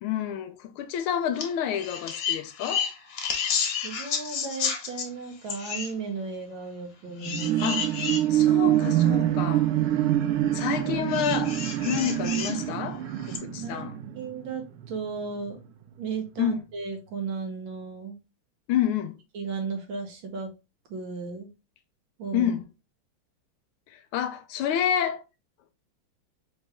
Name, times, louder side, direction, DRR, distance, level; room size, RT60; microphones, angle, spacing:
voice 1, 0.0-2.9 7.6-8.0 8.3-9.7 10.5-11.6 11.8-13.9 16.4-16.6 18.7-19.2 22.3-22.7 23.9-25.2, left 9 dB, 80° left, 1.5 m, -29 dB
sound 1, 1.3-1.5 1.8-5.1 5.5-5.9 7.2-8.2 9.0-9.1 11.1-12.6 13.3-13.4, left 6 dB, 65° left, 1.6 m, -31 dB
voice 2, 3.8-7.8 13.6-13.9 14.2-15.7 16.0-18.2 19.3-20.5 20.9-21.5 22.2-22.5, right 5 dB, 65° right, 1.7 m, -35 dB
sound 2, 7.2-15.0 15.5-15.6, right 12 dB, 85° right, 1.5 m, -25 dB
4.2 x 3.3 x 3.4 m
omnidirectional pair, 2.4 m